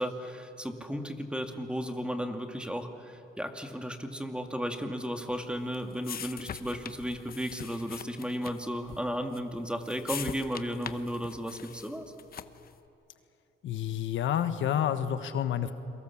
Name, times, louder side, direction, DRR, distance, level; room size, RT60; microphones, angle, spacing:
voice 1, 0.0-12.1, equal, 5° right, 5 dB, 2.2 m, -34 dB
sound 1, 5.3-12.8, left 8 dB, 50° left, 1.0 m, -43 dB
voice 2, 13.6-15.7, left 10 dB, 75° left, 10 dB, 1.3 m, -29 dB
28.5 x 23.0 x 7.3 m, 2.8 s
cardioid pair, 90°, 20 cm